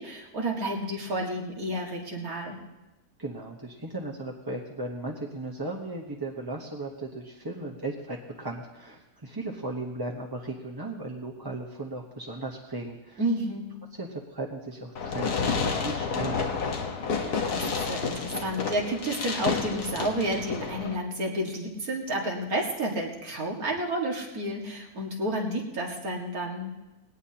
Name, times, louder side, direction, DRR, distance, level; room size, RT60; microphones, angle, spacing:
voice 1, 0.0-2.6 13.2-13.8 17.2-26.7, right 1 dB, 70° right, 0 dB, 2.4 m, -31 dB
voice 2, 3.2-13.2 13.9-16.4, right 2 dB, 15° right, -2 dB, 0.9 m, -36 dB
Fireworks, 15.0-21.0, left 5 dB, 85° left, 1.8 m, -30 dB
20.0 x 17.5 x 2.9 m, 1.0 s
omnidirectional pair, 1.6 m